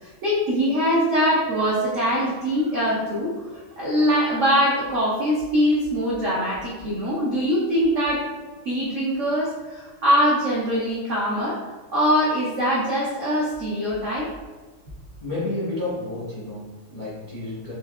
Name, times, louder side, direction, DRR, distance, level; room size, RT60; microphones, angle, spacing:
voice 1, 0.0-8.2 8.6-11.6 11.9-14.3, equal, 70° right, -6 dB, 0.7 m, -22 dB
voice 2, 15.2-17.7, left 2 dB, 40° left, -10 dB, 0.6 m, -31 dB
4.5 x 2.7 x 2.3 m, 1.3 s
omnidirectional pair, 2.2 m